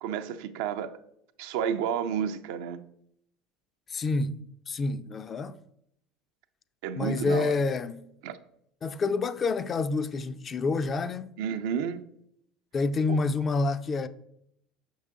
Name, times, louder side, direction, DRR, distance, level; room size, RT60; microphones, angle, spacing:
voice 1, 0.0-1.0 1.4-2.8 6.8-7.5 8.2-8.4 11.4-12.0 13.1-13.2, right 8 dB, 75° right, 0.5 m, -31 dB
voice 2, 3.9-4.4 4.7-5.6 7.0-8.0 8.8-11.3 12.7-14.1, left 3 dB, 35° left, 0.5 m, -28 dB
6.6 x 5.5 x 3.7 m
hypercardioid pair, 80°, 0 cm